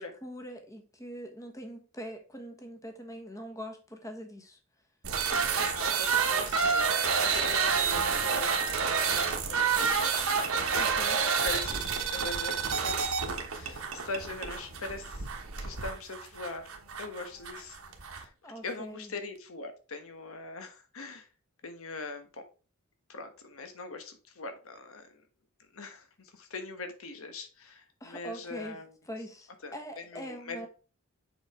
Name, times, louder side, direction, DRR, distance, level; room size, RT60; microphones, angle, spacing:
voice 1, 0.0-4.6 10.7-11.2 18.4-19.1 28.0-28.8 29.1-30.7, equal, 15° left, 1.3 m, -43 dB
sound 1, 5.0-18.3, right 5 dB, 70° right, 1.2 m, -29 dB
voice 2, 5.7-6.9 7.2-10.2 10.7-10.8 11.4-15.3 15.6-16.6 17.0-18.3 18.6-21.3 21.6-22.4 23.1-25.2 25.7-28.9 29.6-30.7, left 3 dB, 70° left, 1.3 m, -42 dB
7.2 x 5.5 x 3.7 m
head